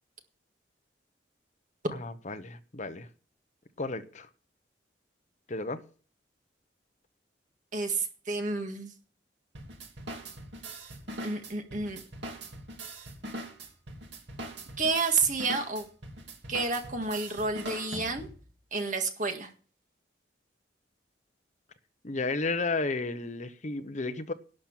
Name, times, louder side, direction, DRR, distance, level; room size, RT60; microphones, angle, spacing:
voice 1, 1.9-3.1 3.8-4.3 5.5-5.8 22.0-24.3, left 3 dB, 40° left, 0.9 m, -33 dB
voice 2, 7.7-8.9 11.2-12.0 14.8-15.9 16.5-18.3 18.7-19.5, right 4 dB, 45° right, 1.8 m, -30 dB
sound 1, 9.5-18.5, right 1 dB, 75° right, 2.3 m, -42 dB
11.5 x 6.0 x 8.6 m
head